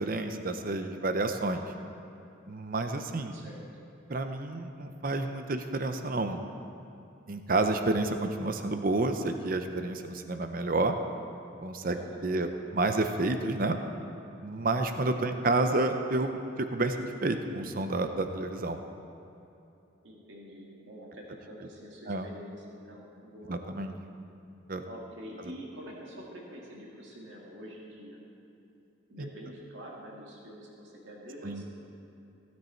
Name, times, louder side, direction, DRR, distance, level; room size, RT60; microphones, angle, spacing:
voice 1, 0.0-1.7 2.5-3.4 4.1-6.4 7.3-10.9 11.6-12.0 12.2-12.5 12.7-13.8 14.4-17.0 17.2-18.8 22.1-22.3 23.5-23.9 24.7-24.8 29.2-29.3 31.4-31.6, right 2 dB, 45° right, 7 dB, 0.6 m, -29 dB
voice 2, 3.3-3.7 11.8-12.7 15.2-15.4 20.0-23.6 24.9-28.2 29.1-31.6, equal, 70° right, -2 dB, 2.2 m, -46 dB
16.5 x 9.5 x 4.4 m, 2.8 s
head